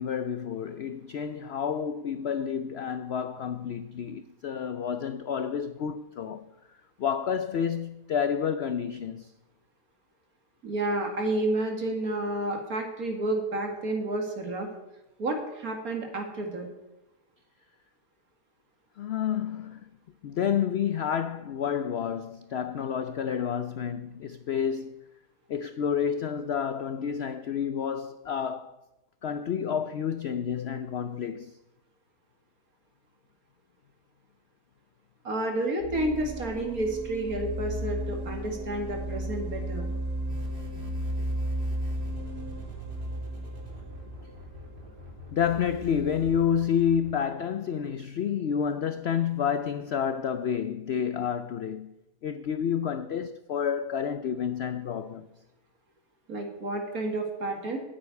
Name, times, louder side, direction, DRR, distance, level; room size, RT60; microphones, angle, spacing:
voice 1, 0.0-6.5 7.0-9.3 19.0-19.8 20.2-24.9 25.5-28.7 29.2-31.6 45.3-51.9 52.2-55.3, left 8 dB, 75° left, 0.5 m, -29 dB
voice 2, 10.6-14.7 15.2-16.7 35.2-39.9 56.3-57.8, right 2 dB, 60° right, 2.5 m, -30 dB
sound 1, 35.8-45.6, right 1 dB, 80° right, 2.3 m, -34 dB
sound 2, 40.3-47.1, equal, 30° right, 2.5 m, -46 dB
9.4 x 8.7 x 9.6 m
omnidirectional pair, 1.7 m